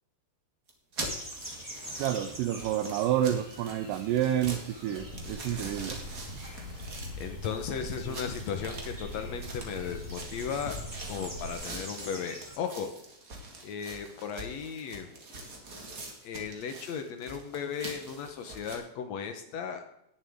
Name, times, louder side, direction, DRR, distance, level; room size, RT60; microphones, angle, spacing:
sound 1, 0.7-18.8, right 2 dB, 40° right, 1.2 m, -44 dB
sound 2, 1.0-12.6, right 1 dB, 10° right, 1.5 m, -46 dB
voice 1, 2.0-6.0, right 11 dB, 80° right, 8 dB, 2.1 m, -29 dB
sound 3, 5.0-11.5, left 1 dB, 50° left, 2.5 m, -42 dB
voice 2, 7.2-10.8 11.1-12.9 13.6-15.2 16.2-19.8, left 7 dB, 70° left, 6 dB, 1.7 m, -36 dB
18.5 x 7.1 x 3.6 m, 0.79 s
omnidirectional pair, 4.1 m